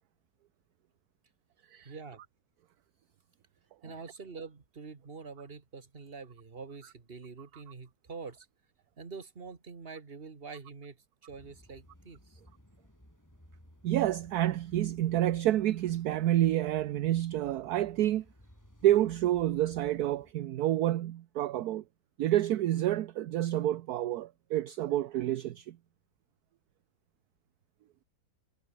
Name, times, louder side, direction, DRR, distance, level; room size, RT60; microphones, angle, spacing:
voice 1, 1.8-2.2 3.8-8.5 9.0-11.0 11.2-12.4, right 4 dB, 30° right, 1.9 m, -45 dB
sound 1, 11.3-20.3, equal, 10° left, 5.3 m, -58 dB
voice 2, 13.8-18.2 18.8-21.8 22.2-25.8, right 13 dB, 65° right, 1.0 m, -28 dB
omnidirectional pair, 2.1 m